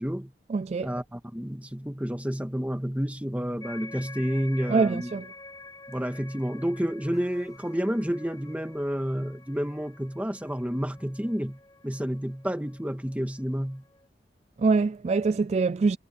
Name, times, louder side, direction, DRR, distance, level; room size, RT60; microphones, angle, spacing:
voice 1, 0.0-0.3 0.8-5.1 5.9-13.8, equal, 10° right, 1.9 m, -30 dB
voice 2, 0.5-0.9 4.7-5.2 14.6-16.0, right 4 dB, 40° right, 0.3 m, -24 dB
sound 1, 3.6-14.1, left 3 dB, 20° left, 6.7 m, -48 dB
head